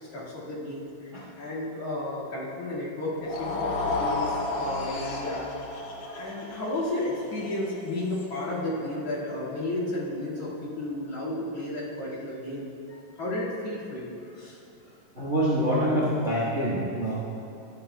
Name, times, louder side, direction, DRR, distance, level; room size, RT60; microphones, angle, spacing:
voice 1, 0.0-5.5 6.1-12.7 13.2-14.1 14.4-14.6, left 1 dB, 50° left, -9 dB, 2.8 m, -33 dB
sound 1, 3.1-9.4, left 2 dB, 70° left, 2.3 m, -33 dB
voice 2, 15.1-17.1, equal, 45° right, -6 dB, 0.9 m, -25 dB
14.5 x 11.0 x 2.2 m, 2.9 s
omnidirectional pair, 4.1 m